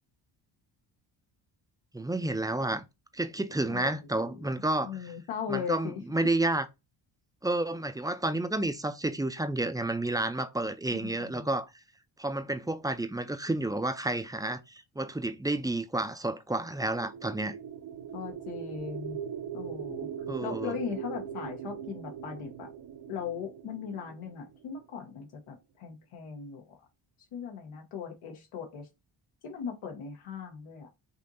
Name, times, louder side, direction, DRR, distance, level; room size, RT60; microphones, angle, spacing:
voice 1, 1.9-2.8 3.1-5.1 5.5-6.7 7.4-11.7 12.2-17.5 20.3-20.7, right 2 dB, 10° right, 0.4 m, -30 dB
voice 2, 3.7-4.5 4.8-5.8 10.9-11.5 18.1-19.2 19.5-20.1 20.4-22.7 23.1-26.7 27.3-28.9 29.4-30.9, left 7 dB, 85° left, 1.2 m, -38 dB
sound 1, 16.7-24.8, right 8 dB, 60° right, 0.7 m, -40 dB
5.5 x 2.8 x 2.6 m
cardioid pair, 80°, 49 cm